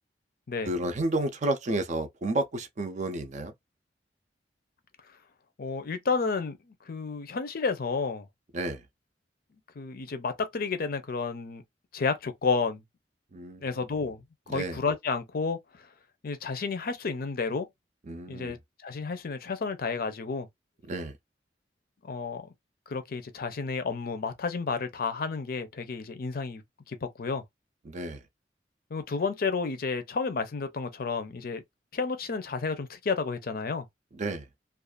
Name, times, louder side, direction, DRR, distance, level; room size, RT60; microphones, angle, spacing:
voice 1, 0.6-3.5 8.5-8.8 13.3-13.7 14.5-14.8 18.1-18.6 20.9-21.1 27.8-28.2 34.1-34.5, right 2 dB, 45° right, 0.5 m, -31 dB
voice 2, 5.6-6.6 6.9-8.3 9.8-11.6 11.9-12.8 13.6-14.2 14.5-15.6 16.2-17.7 18.3-18.6 18.8-20.5 22.0-22.5 22.9-26.6 26.9-27.4 28.9-31.6 31.9-33.9, left 4 dB, 55° left, 0.5 m, -31 dB
2.5 x 2.3 x 2.3 m
head